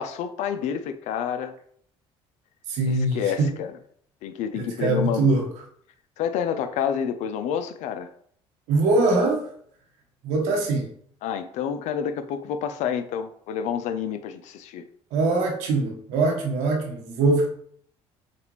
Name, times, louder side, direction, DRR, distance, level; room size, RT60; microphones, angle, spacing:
voice 1, 0.0-1.5 2.9-3.7 4.2-5.4 6.2-8.1 11.2-14.8, left 8 dB, 75° left, 0.5 m, -29 dB
voice 2, 2.7-3.5 4.5-5.5 8.7-9.5 10.2-10.9 15.1-17.5, right 3 dB, 85° right, 1.3 m, -22 dB
6.5 x 2.5 x 3.1 m
cardioid pair, 95°, 12 cm